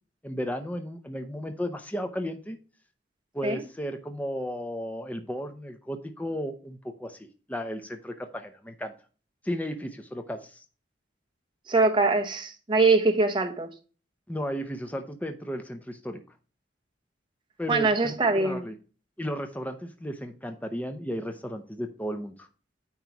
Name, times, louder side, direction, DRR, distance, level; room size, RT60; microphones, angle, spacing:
voice 1, 0.2-2.6 3.3-8.9 9.4-10.6 14.3-16.2 17.6-18.8 19.2-22.5, equal, 10° left, 0.6 m, -34 dB
voice 2, 11.7-13.7 17.7-18.6, right 3 dB, 25° right, 1.0 m, -23 dB
9.1 x 3.1 x 5.8 m
head